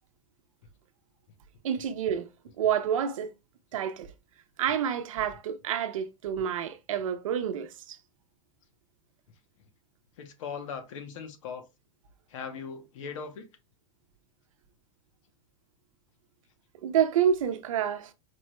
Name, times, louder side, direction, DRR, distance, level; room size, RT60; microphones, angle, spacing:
voice 1, 1.6-2.3 2.6-3.3 3.7-4.1 4.6-8.0 16.8-18.1, right 9 dB, 90° right, 0.7 m, -28 dB
voice 2, 10.2-11.7 12.3-13.4, left 6 dB, 75° left, 0.9 m, -39 dB
4.5 x 2.2 x 3.1 m
supercardioid pair, 145°, 17 cm